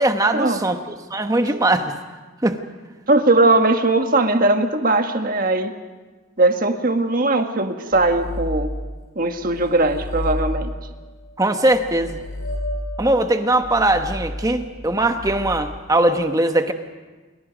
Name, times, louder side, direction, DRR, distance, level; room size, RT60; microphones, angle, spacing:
voice 1, 0.0-1.9 2.4-2.6 11.4-12.2 13.0-16.7, right 1 dB, 15° right, 7 dB, 1.1 m, -20 dB
voice 2, 3.1-5.7 6.4-8.7 9.1-10.7, right 2 dB, 45° right, 6 dB, 1.5 m, -19 dB
sound 1, 7.9-9.1 9.4-15.9, equal, 75° left, 5.2 m, -31 dB
27.5 x 23.5 x 5.2 m, 1.3 s
head